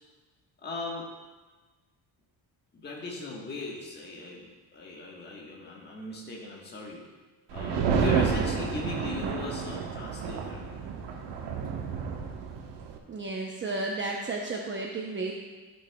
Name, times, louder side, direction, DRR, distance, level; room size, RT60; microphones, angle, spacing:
voice 1, 0.6-1.1 2.7-4.5 4.7-7.0 7.5-10.8, left 2 dB, 25° left, -3 dB, 1.4 m, -38 dB
sound 1, 7.5-13.0, right 5 dB, 80° right, 1.2 m, -30 dB
voice 2, 13.1-15.3, right 3 dB, 30° right, -1 dB, 0.7 m, -33 dB
14.5 x 6.3 x 2.3 m, 1.3 s
cardioid pair, 120°, 41 cm